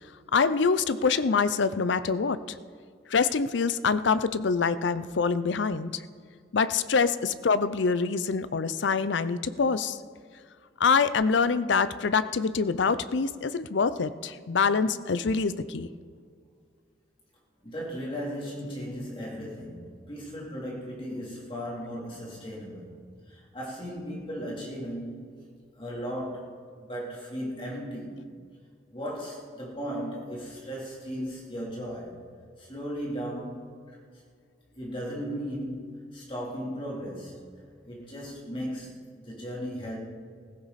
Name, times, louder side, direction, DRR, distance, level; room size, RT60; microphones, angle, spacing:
voice 1, 0.3-2.4 3.1-5.9 6.5-10.0 10.8-15.9, left 5 dB, 75° left, 14 dB, 0.5 m, -25 dB
voice 2, 17.6-23.0 23.3-25.3 25.8-28.2 28.9-32.3 32.6-34.0 34.7-37.4 37.9-40.0, equal, 30° left, -4 dB, 3.4 m, -36 dB
16.0 x 15.0 x 4.2 m, 2.2 s
head